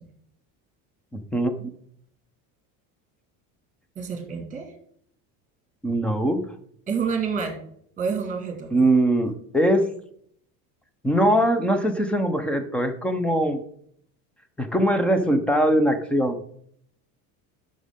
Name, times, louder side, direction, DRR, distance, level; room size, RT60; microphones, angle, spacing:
voice 1, 1.3-1.7 5.8-6.4 8.7-9.9 11.0-13.6 14.6-16.4, right 1 dB, 5° left, 9 dB, 0.6 m, -21 dB
voice 2, 4.0-4.7 6.9-7.6 8.0-8.7, right 6 dB, 20° right, 4 dB, 1.9 m, -28 dB
11.0 x 6.5 x 3.6 m, 0.66 s
cardioid pair, 165°, 39 cm